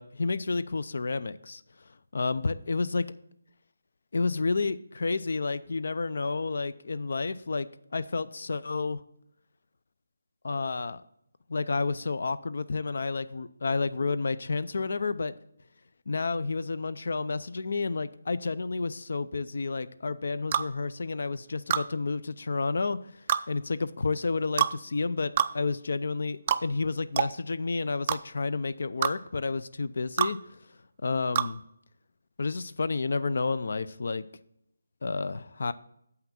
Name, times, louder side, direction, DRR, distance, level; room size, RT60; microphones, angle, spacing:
voice 1, 0.0-1.6 2.1-3.1 4.1-9.0 10.4-11.0 11.5-15.4 16.1-23.0 23.5-30.4 31.0-31.6 32.4-34.3 35.0-35.7, left 3 dB, 60° left, 15 dB, 0.5 m, -30 dB
sound 1, 20.5-20.7 21.7-21.9 23.3-23.5 24.6-24.8 25.4-25.5 26.5-26.6 27.2-27.3 28.1-28.2 29.0-29.2 30.2-30.3 31.4-31.5, right 9 dB, 30° right, 0.3 m, -25 dB
7.9 x 5.8 x 5.9 m, 0.74 s
figure-of-eight pair, 165°, 0 cm